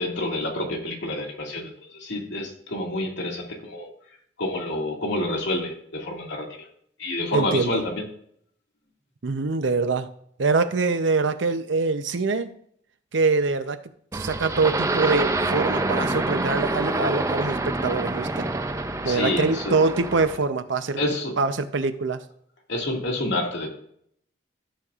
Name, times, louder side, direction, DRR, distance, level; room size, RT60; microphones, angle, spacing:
voice 1, 0.0-3.9 4.4-6.5 7.0-8.0 19.0-19.7 21.0-21.3 22.7-23.7, left 1 dB, 75° left, -1 dB, 2.1 m, -28 dB
voice 2, 7.3-7.8 9.2-10.1 10.4-12.5 13.1-13.8 14.1-18.5 19.0-21.0 21.4-22.2, right 3 dB, 80° right, 10 dB, 0.7 m, -24 dB
sound 1, 14.1-20.4, right 2 dB, 15° right, 0.4 m, -26 dB
13.5 x 6.6 x 2.4 m, 0.66 s
head